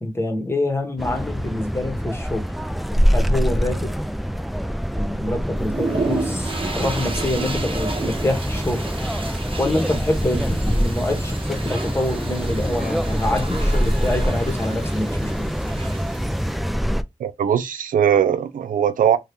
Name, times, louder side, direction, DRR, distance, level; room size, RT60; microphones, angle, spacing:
voice 1, 0.0-2.5 3.1-4.0 4.9-8.9 9.6-15.5, left 1 dB, 20° left, 1.0 m, -26 dB
sound 1, 1.0-17.0, equal, ahead, 0.3 m, -24 dB
sound 2, 5.6-16.5, right 3 dB, 40° right, 1.1 m, -32 dB
voice 2, 17.2-19.2, right 8 dB, 85° right, 0.4 m, -20 dB
2.8 x 2.4 x 3.4 m
cardioid pair, 65°, 14 cm